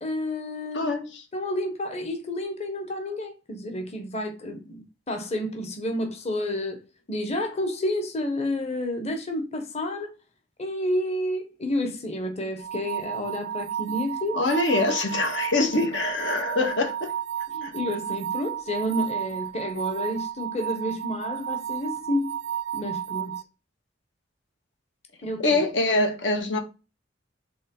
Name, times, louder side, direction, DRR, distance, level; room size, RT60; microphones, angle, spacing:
voice 1, 0.0-0.9 1.3-6.8 7.1-10.1 10.6-14.4 17.5-22.4 22.7-23.4 25.2-25.6, left 1 dB, 35° left, 1.3 m, -30 dB
voice 2, 0.7-1.2 14.4-17.1 17.6-17.7 25.4-26.6, left 2 dB, 75° left, 1.7 m, -24 dB
sound 1, 12.6-23.4, right 10 dB, 75° right, 0.5 m, -32 dB
5.4 x 3.9 x 5.3 m
head